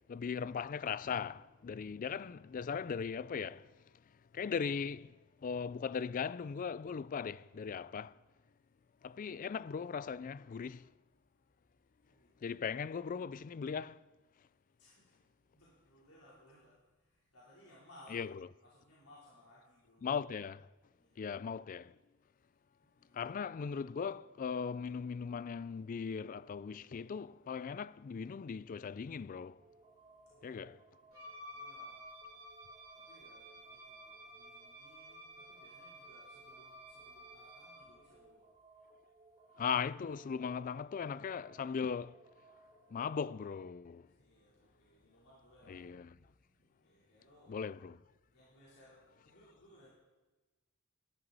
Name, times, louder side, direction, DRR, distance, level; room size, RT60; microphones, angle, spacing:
voice 1, 0.1-3.7 4.3-5.1 5.4-8.1 9.0-10.9 12.4-14.0 18.1-18.3 20.0-20.7 21.2-21.9 23.1-29.6 30.4-30.8 39.6-42.2 42.9-44.1 45.7-46.1 47.5-48.0, left 6 dB, 40° left, 0.3 m, -38 dB
voice 2, 12.0-12.7 14.8-15.2 15.5-18.2 18.6-20.1 20.9-21.2 22.8-23.2 30.3-30.7 31.5-32.0 32.9-38.5 44.1-47.6 48.3-49.9, left 1 dB, 85° left, 3.7 m, -63 dB
sound 1, 29.6-43.3, right 3 dB, 25° right, 2.6 m, -63 dB
Wind instrument woodwind instrument, 31.1-37.9, equal, 65° right, 3.4 m, -53 dB
18.5 x 12.0 x 4.1 m
head